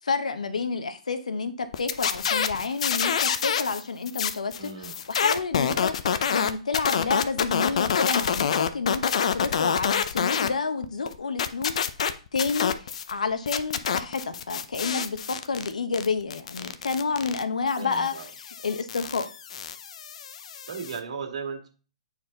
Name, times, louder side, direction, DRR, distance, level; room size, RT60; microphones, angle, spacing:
voice 1, 0.0-11.7 12.0-18.1 18.5-19.3, left 4 dB, 80° left, 10 dB, 1.0 m, -29 dB
sound 1, 1.7-10.5 10.8-13.1 13.5-21.0, left 7 dB, 65° left, 0.7 m, -27 dB
voice 2, 4.6-5.0 17.8-18.3 20.7-21.7, right 5 dB, 70° right, 4 dB, 2.0 m, -36 dB
8.4 x 4.6 x 3.9 m, 0.36 s
hypercardioid pair, 130°, 4 cm